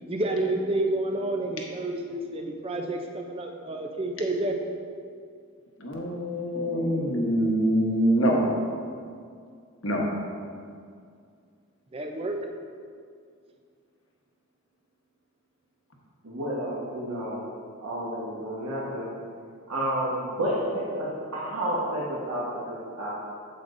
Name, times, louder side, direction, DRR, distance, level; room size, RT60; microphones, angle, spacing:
voice 1, 0.1-4.6 11.9-12.4, right 2 dB, 25° right, 3 dB, 0.5 m, -29 dB
voice 2, 5.8-8.4 9.8-10.0, equal, 60° left, -1 dB, 1.2 m, -24 dB
voice 3, 16.2-17.4 17.8-19.1 19.7-21.1 21.3-22.6 23.0-23.1, right 1 dB, 80° right, -8 dB, 1.3 m, -30 dB
8.7 x 7.5 x 2.6 m, 2.2 s
head